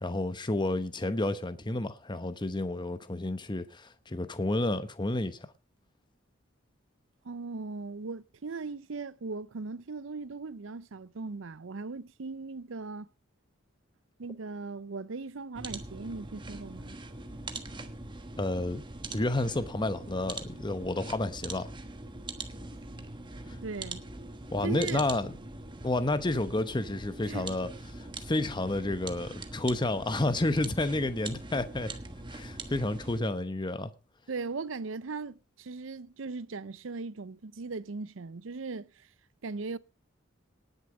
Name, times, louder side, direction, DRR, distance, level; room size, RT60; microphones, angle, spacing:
voice 1, 0.0-5.4 18.4-18.8 19.1-21.7 24.5-25.3 25.8-27.7 28.2-31.9 32.3-33.9, left 2 dB, 25° left, 0.9 m, -30 dB
voice 2, 7.2-13.1 14.2-17.0 23.6-24.0 24.6-25.1 27.2-27.6 34.3-39.1 39.4-39.8, right 4 dB, 75° right, 0.6 m, -38 dB
sound 1, 15.5-33.2, right 2 dB, 25° right, 1.3 m, -42 dB
19.0 x 6.8 x 5.0 m
head